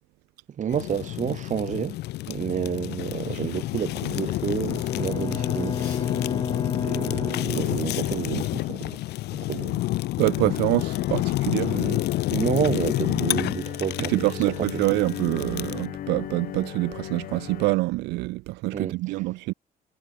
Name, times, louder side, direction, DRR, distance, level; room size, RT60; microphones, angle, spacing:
voice 1, 0.6-2.0 2.3-6.0 6.8-9.0 9.3-9.8 11.6-14.1 14.6-14.8 18.7-19.0, right 8 dB, 45° right, 3.1 m, -30 dB
Fire, 0.7-15.9, left 17 dB, 80° left, 1.8 m, -29 dB
Bowed string instrument, 4.7-8.3, left 5 dB, 25° left, 2.8 m, -32 dB
voice 2, 10.2-11.7 14.0-19.5, right 21 dB, 90° right, 1.0 m, -26 dB
sound 1, 10.3-17.8, left 12 dB, 60° left, 1.6 m, -37 dB
cardioid pair, 110°, 17 cm